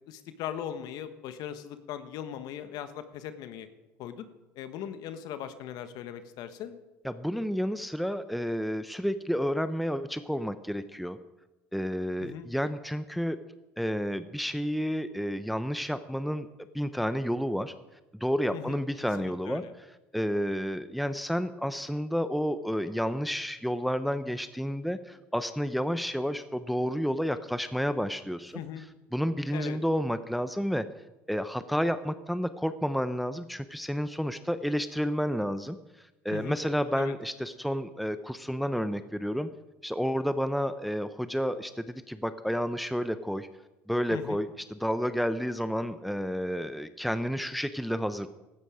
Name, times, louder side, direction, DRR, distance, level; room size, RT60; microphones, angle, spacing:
voice 1, 0.1-3.7 4.0-4.3 4.5-6.7 12.2-12.5 18.5-18.8 19.2-19.7 28.5-28.8 29.5-29.8 36.3-36.6 37.0-37.1 44.1-44.4, left 10 dB, 65° left, 10 dB, 1.3 m, -39 dB
voice 2, 7.0-11.2 11.7-13.4 13.8-16.5 16.7-17.7 18.2-19.6 20.1-28.5 29.1-30.8 31.3-35.8 36.2-39.5 39.8-43.5 43.9-48.3, equal, ahead, 11 dB, 0.8 m, -30 dB
16.0 x 13.0 x 5.0 m, 1.0 s
supercardioid pair, 80°, 7 cm